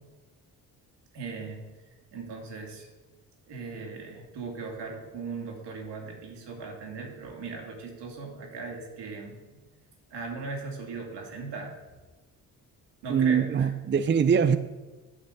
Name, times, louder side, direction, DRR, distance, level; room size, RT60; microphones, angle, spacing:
voice 1, 1.1-1.6 2.1-2.9 3.5-9.6 10.1-11.7 13.0-13.7, right 4 dB, 70° right, 1 dB, 2.6 m, -38 dB
voice 2, 13.1-14.6, right 7 dB, 25° right, 12 dB, 0.5 m, -22 dB
8.7 x 5.2 x 7.1 m, 1.2 s
hypercardioid pair, 45°, 44 cm